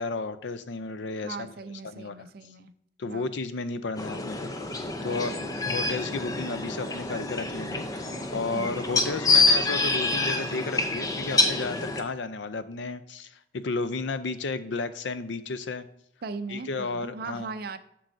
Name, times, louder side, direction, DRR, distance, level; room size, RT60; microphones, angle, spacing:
voice 1, 0.0-1.5 1.9-2.1 3.0-4.5 5.0-5.4 5.6-8.0 8.3-15.9 16.5-17.5, left 3 dB, 85° left, 13 dB, 0.5 m, -33 dB
voice 2, 1.2-2.7 3.1-3.3 5.0-6.4 8.5-8.8 16.2-17.8, right 4 dB, 60° right, 10 dB, 0.5 m, -39 dB
sound 1, 4.0-12.0, left 3 dB, 20° left, 0.6 m, -27 dB
7.6 x 6.1 x 2.6 m, 0.78 s
head